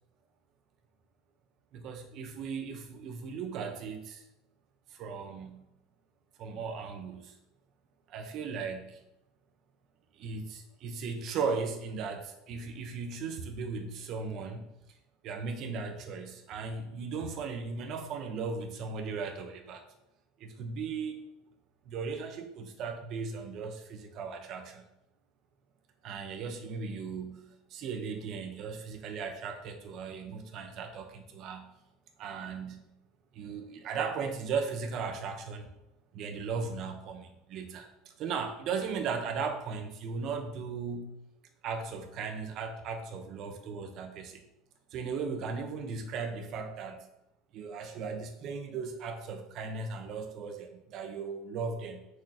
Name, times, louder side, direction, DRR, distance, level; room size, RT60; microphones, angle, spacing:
voice 1, 1.7-4.2 4.9-5.7 6.4-7.3 8.1-9.0 10.1-14.7 15.2-19.8 20.4-21.2 21.8-24.9 26.0-31.7 32.2-32.9 33.3-35.7 36.1-41.1 41.6-44.4 44.9-47.1 47.5-52.1, right 5 dB, 35° right, 6 dB, 0.9 m, -37 dB
8.6 x 6.4 x 2.9 m, 0.87 s
cardioid pair, 180°, 0 cm